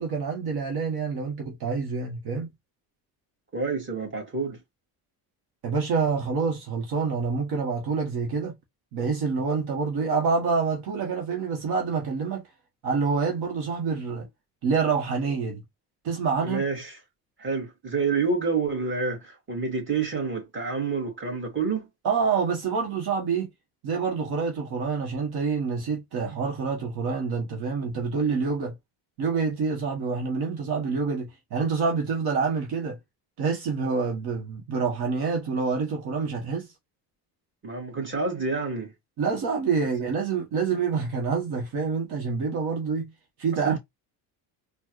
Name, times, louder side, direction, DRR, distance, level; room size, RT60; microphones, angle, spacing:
voice 1, 0.0-2.5 5.6-8.5 8.9-12.4 12.8-14.3 14.6-15.6 16.0-16.6 22.0-23.5 23.8-28.7 29.2-33.0 33.4-36.7 39.2-43.1 43.4-43.8, right 5 dB, 65° right, 1.4 m, -27 dB
voice 2, 3.5-4.6 16.4-17.0 17.4-21.9 37.6-38.9 43.6-43.8, right 4 dB, 30° right, 2.1 m, -28 dB
4.3 x 2.6 x 3.1 m
cardioid pair, 120°, 41 cm